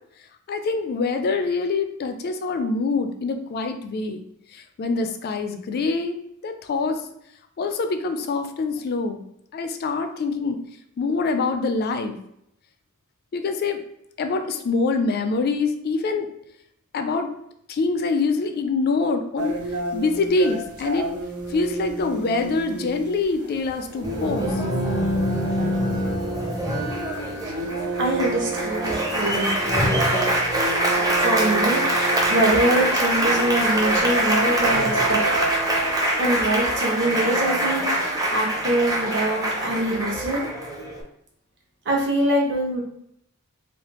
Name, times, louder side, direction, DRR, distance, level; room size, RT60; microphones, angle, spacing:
voice 1, 0.5-4.2 4.5-6.2 6.4-7.0 7.6-9.2 9.5-10.6 11.0-12.2 13.3-13.8 14.2-16.3 16.9-17.3 17.7-19.6 19.9-21.1 21.5-24.6, left 3 dB, 45° left, 7 dB, 0.3 m, -25 dB
sound 1, 19.4-36.8, right 3 dB, 85° right, 0.8 m, -31 dB
Applause, 24.0-41.0, right 1 dB, 15° right, 0.6 m, -24 dB
voice 2, 28.0-30.4 31.2-35.2 36.2-40.5 41.8-42.8, right 1 dB, 55° right, -2 dB, 1.0 m, -24 dB
3.2 x 2.7 x 3.0 m, 0.76 s
head